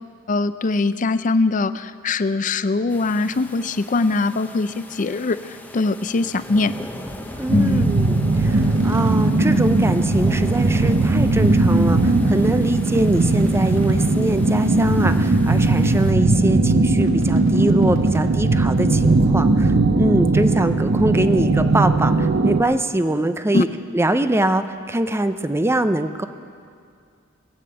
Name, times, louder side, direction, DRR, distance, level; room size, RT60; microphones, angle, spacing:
voice 1, 0.3-6.7 7.5-7.9 23.5-23.6, left 3 dB, 40° left, 13 dB, 0.5 m, -22 dB
sound 1, 2.9-16.1, equal, 10° left, 0.9 m, -35 dB
sound 2, 4.9-5.0 6.0-6.1 6.6-6.7 7.0-7.4 8.3-9.1 10.2-10.3 10.5-10.6 11.1-11.9 12.3-12.4 12.8-13.9 14.7-14.8 15.0-15.2 16.5-18.3 18.8-18.9, right 1 dB, 80° right, 2.2 m, -39 dB
voice 2, 7.4-23.7 23.9-26.3, right 1 dB, 15° right, 10 dB, 0.5 m, -23 dB
sound 3, 7.5-22.6, right 2 dB, 55° right, 0.6 m, -18 dB
19.0 x 8.9 x 7.7 m, 2.3 s
head